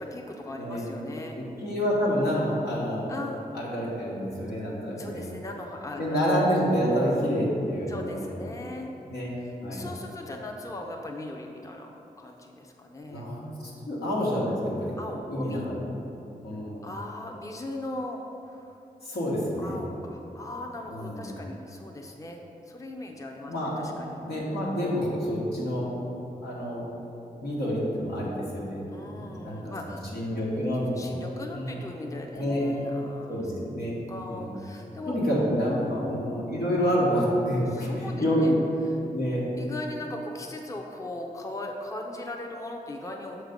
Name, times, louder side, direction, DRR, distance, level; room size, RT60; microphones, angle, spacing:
voice 1, 0.0-1.4 3.1-3.4 5.0-6.4 6.9-7.0 7.9-8.9 9.4-11.9 12.2-13.3 15.0-15.7 16.8-18.7 19.6-24.2 24.7-24.8 28.9-30.6 31.0-33.5 34.1-35.2 35.6-36.6 37.7-38.5 38.8-39.0 39.6-43.4, left 2 dB, 20° left, 1 dB, 0.6 m, -39 dB
voice 2, 1.6-3.0 3.5-5.2 6.0-8.4 9.1-9.3 9.6-9.8 13.1-13.4 13.9-14.9 15.3-15.8 16.4-16.8 19.0-19.8 20.9-21.3 23.5-23.9 24.2-25.9 26.4-26.9 27.4-28.8 29.1-31.0 31.5-31.8 32.4-32.7 33.3-33.9 34.3-34.6 35.0-38.5 39.1-39.4, equal, 85° left, -6 dB, 1.5 m, -28 dB
6.2 x 3.3 x 5.1 m, 2.8 s
cardioid pair, 55°, 16 cm